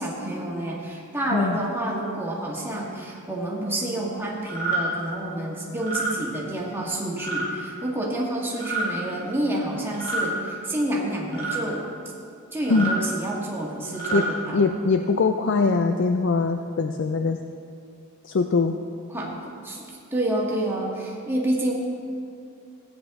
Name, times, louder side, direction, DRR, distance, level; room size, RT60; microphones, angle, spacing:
voice 1, 0.0-11.8 12.5-14.6 19.1-19.8 20.1-21.7, right 1 dB, 10° right, -3 dB, 1.5 m, -28 dB
sound 1, 4.5-4.8 5.7-6.1 7.2-7.5 8.5-8.9 9.9-10.3 11.3-11.6 12.6-13.0 13.8-14.3, right 4 dB, 20° left, 3.0 m, -28 dB
voice 2, 12.7-13.1 14.1-17.4 18.2-18.8, left 4 dB, 55° left, 6 dB, 0.4 m, -22 dB
15.5 x 9.5 x 3.7 m, 2.5 s
head